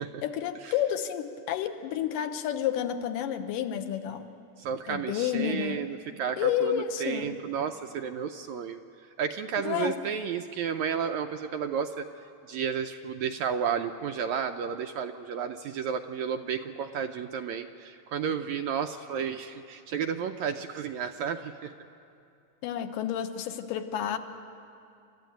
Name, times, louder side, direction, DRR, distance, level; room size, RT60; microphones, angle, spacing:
voice 1, 0.2-4.3 4.9-5.9 6.4-7.4 9.6-10.0 22.6-24.2, left 10 dB, 90° left, 8 dB, 2.6 m, -30 dB
voice 2, 4.6-8.8 9.2-12.1 12.5-21.7, right 7 dB, 75° right, 6 dB, 1.7 m, -32 dB
28.5 x 13.5 x 9.2 m, 2.5 s
omnidirectional pair, 3.8 m